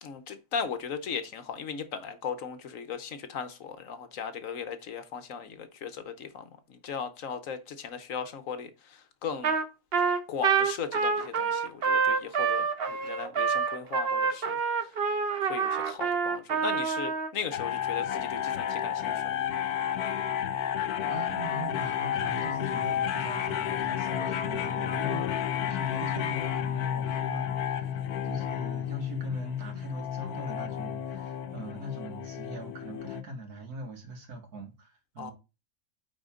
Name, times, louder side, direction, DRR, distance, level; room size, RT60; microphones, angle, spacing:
voice 1, 0.0-9.5 10.3-14.9 15.5-19.6 35.2-35.3, left 6 dB, 65° left, 1.2 m, -37 dB
Trumpet, 9.4-9.7 9.9-17.3, right 5 dB, 45° right, 1.0 m, -27 dB
sound 1, 17.5-33.2, left 9 dB, 85° left, 1.3 m, -31 dB
voice 2, 21.1-35.3, right 1 dB, 80° right, 2.3 m, -41 dB
9.2 x 4.4 x 3.7 m
omnidirectional pair, 1.6 m